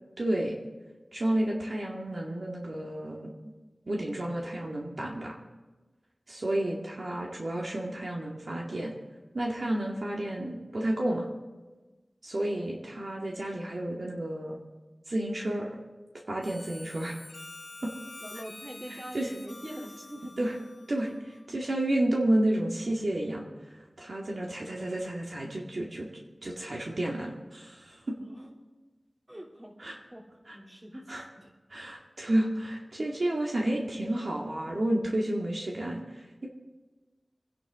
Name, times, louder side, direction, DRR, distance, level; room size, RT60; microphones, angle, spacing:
voice 1, 0.2-0.6 1.1-3.3 3.9-5.4 6.3-8.9 9.3-11.3 12.2-14.6 15.1-15.8 16.3-17.2 19.1-19.3 20.4-20.5 20.9-21.1 21.5-23.4 24.0-26.1 26.4-28.1 29.8-30.0 30.5-30.6 31.1-31.2 31.7-36.5, right 1 dB, 70° right, -2 dB, 2.1 m, -31 dB
Harmonica, 16.4-21.6, left 2 dB, 85° left, 1.7 m, -48 dB
voice 2, 18.2-20.3 20.9-21.0 28.2-28.6 29.3-31.5, equal, 25° right, -2 dB, 3.0 m, -44 dB
26.5 x 10.5 x 3.7 m, 1.2 s
wide cardioid pair, 55°, 0 cm